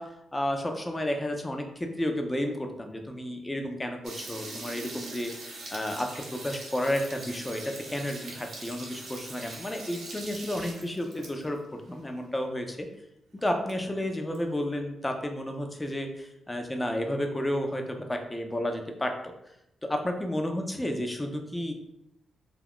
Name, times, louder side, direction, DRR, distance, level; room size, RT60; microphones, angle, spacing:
voice 1, 0.0-12.9 13.4-19.3 19.8-21.7, left 1 dB, 15° left, 4 dB, 0.5 m, -32 dB
sound 1, 4.0-11.6 11.9-12.0 12.2-12.3 12.9-13.0 13.3-14.4, right 2 dB, 75° right, 0.7 m, -43 dB
2.4 x 2.2 x 3.5 m, 0.82 s
cardioid pair, 70°, 0 cm